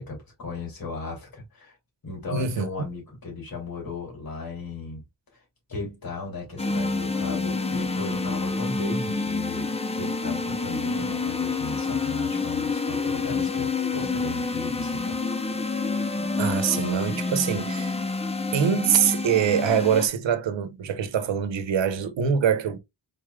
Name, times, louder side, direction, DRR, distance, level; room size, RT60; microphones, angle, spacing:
voice 1, 0.0-1.7 2.0-5.0 5.3-5.4 5.7-15.2, left 3 dB, 50° left, 2.7 m, -36 dB
voice 2, 2.3-2.7 16.4-18.0 18.5-22.8, right 8 dB, 85° right, 0.9 m, -24 dB
sound 1, 6.6-20.1, left 3 dB, 15° left, 0.5 m, -28 dB
4.9 x 4.1 x 2.3 m
wide cardioid pair, 150°, 43 cm